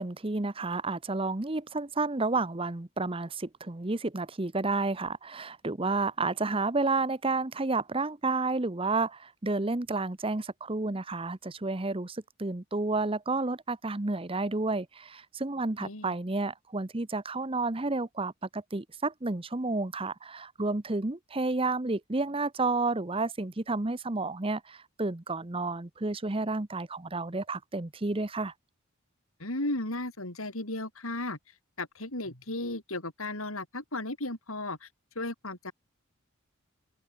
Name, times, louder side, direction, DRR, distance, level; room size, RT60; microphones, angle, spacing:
voice 1, 0.0-28.5, right 3 dB, 25° right, 0.8 m, -31 dB
voice 2, 15.8-16.1 29.4-31.4 31.8-34.9 35.2-35.7, left 2 dB, 75° left, 5.9 m, -35 dB
open air
head